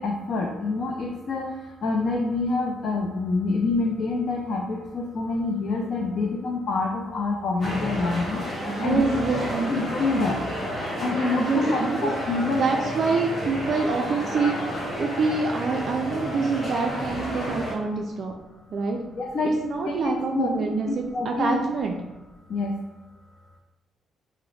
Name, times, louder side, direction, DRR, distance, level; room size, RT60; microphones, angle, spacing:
voice 1, 0.0-1.4 1.8-8.4 8.8-9.2 9.7-10.4 11.0-12.6 19.2-19.5 19.9-20.5 21.1-21.6 22.5-22.7, left 3 dB, 50° left, -1 dB, 0.4 m, -26 dB
sound 1, 7.6-17.7, equal, 30° left, 1.1 m, -31 dB
voice 2, 8.7-9.8 11.4-12.2 12.5-18.4 18.7-19.0 19.6-22.0, right 4 dB, 50° right, 2 dB, 0.3 m, -26 dB
2.9 x 2.0 x 3.9 m, 1.1 s
cardioid pair, 120°, 0 cm